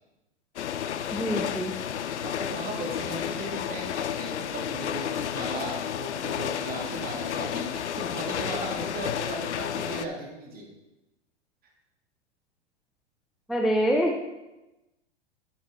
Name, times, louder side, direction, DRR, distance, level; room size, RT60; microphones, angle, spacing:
sound 1, 0.6-10.1, left 9 dB, 90° left, 0.6 m, -32 dB
voice 1, 1.1-1.7 13.5-14.2, equal, ahead, 0 dB, 0.4 m, -25 dB
voice 2, 2.1-10.6, right 2 dB, 25° right, 0 dB, 2.4 m, -37 dB
10.5 x 6.1 x 3.9 m, 1.0 s
hypercardioid pair, 120°, 34 cm